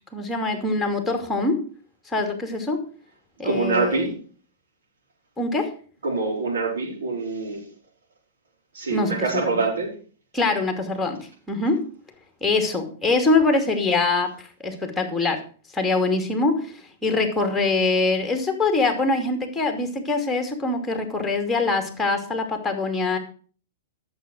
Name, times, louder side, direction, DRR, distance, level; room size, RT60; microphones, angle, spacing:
voice 1, 0.1-1.6 2.1-2.8 3.4-4.1 5.4-5.7 8.9-9.5 10.3-11.2 11.5-11.9 12.4-15.4 15.7-23.2, left 3 dB, 5° left, 6 dB, 2.7 m, -23 dB
voice 2, 3.4-4.2 6.0-7.7 8.7-9.9, right 3 dB, 60° right, -8 dB, 5.9 m, -25 dB
13.0 x 7.2 x 6.4 m, 0.42 s
figure-of-eight pair, 100°, 0 cm